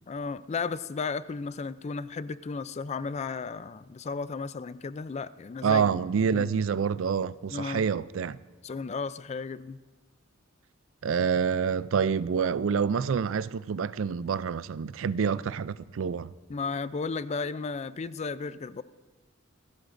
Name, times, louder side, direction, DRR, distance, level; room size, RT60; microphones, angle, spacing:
voice 1, 0.1-6.0 6.3-6.5 7.5-7.8 8.6-9.8 16.5-18.8, left 4 dB, 35° left, 0.4 m, -34 dB
voice 2, 5.6-8.4 11.0-16.3, right 6 dB, 70° right, 0.4 m, -27 dB
26.5 x 13.0 x 2.6 m
head